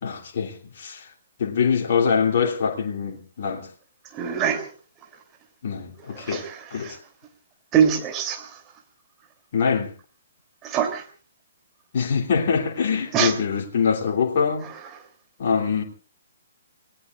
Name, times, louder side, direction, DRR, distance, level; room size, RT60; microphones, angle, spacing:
voice 1, 0.0-1.1 1.4-3.7 5.6-6.4 6.7-7.0 9.5-9.9 11.9-14.7 15.4-15.8, left 6 dB, 45° left, 3.2 m, -24 dB
voice 2, 4.1-4.7 6.2-7.0 7.7-8.6 10.6-11.0 13.1-13.3, right 8 dB, 20° right, 3.2 m, -24 dB
29.0 x 19.0 x 2.5 m
figure-of-eight pair, 125°, 0 cm